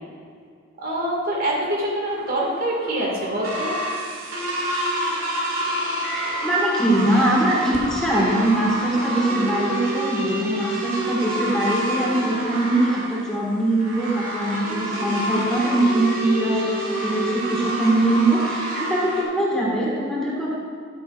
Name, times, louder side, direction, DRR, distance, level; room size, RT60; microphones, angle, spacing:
voice 1, 0.8-3.8, right 1 dB, 45° right, -3 dB, 2.0 m, -25 dB
sound 1, 2.1-19.2, right 1 dB, 90° right, 2.0 m, -28 dB
voice 2, 6.4-20.5, right 1 dB, 5° left, -6 dB, 1.7 m, -22 dB
11.5 x 9.9 x 2.5 m, 2.1 s
head